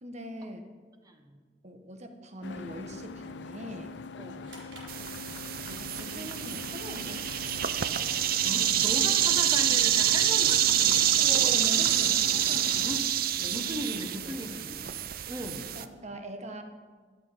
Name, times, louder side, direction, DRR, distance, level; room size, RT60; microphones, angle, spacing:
voice 1, 0.0-0.6 1.6-3.9 5.7-8.1 11.2-12.9 13.4-13.7 14.2-14.4 15.7-16.6, right 1 dB, 40° right, 6 dB, 1.3 m, -42 dB
voice 2, 1.1-1.4 4.2-4.5 8.4-11.5 12.8-13.1 13.5-14.8 15.3-15.7, equal, 20° right, 5 dB, 1.4 m, -38 dB
sound 1, 2.4-13.0, left 4 dB, 80° left, 0.5 m, -42 dB
sound 2, 4.4-5.8, right 2 dB, 85° right, 4.7 m, -52 dB
sound 3, 4.9-15.9, right 11 dB, 55° right, 0.6 m, -27 dB
12.0 x 12.0 x 5.8 m, 1.5 s
head